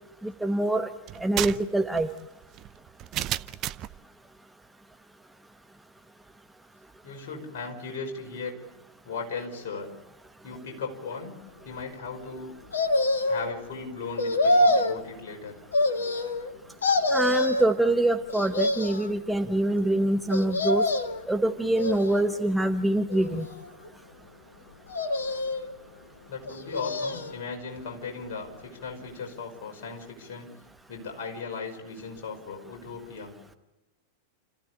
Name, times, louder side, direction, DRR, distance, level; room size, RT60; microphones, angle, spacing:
voice 1, 0.2-0.9 1.2-2.1 17.1-20.9 21.3-23.5, right 1 dB, 5° right, 6 dB, 1.0 m, -25 dB
sound 1, 1.1-4.0, right 13 dB, 35° right, 0.7 m, -33 dB
voice 2, 7.0-8.5 9.0-9.9 10.4-11.3 11.6-12.5 13.3-15.6 26.3-30.5 30.9-33.3, left 4 dB, 55° left, 2 dB, 5.7 m, -37 dB
sound 2, 12.7-13.5 14.2-15.0 15.7-16.5 16.8-17.7 18.3-19.1 20.3-21.2 21.8-22.5 23.1-23.9 24.9-25.7 26.4-27.4 27.8-27.9, left 1 dB, 70° left, 1.6 m, -26 dB
29.0 x 15.0 x 8.5 m, 1.1 s
figure-of-eight pair, 90°, 0 cm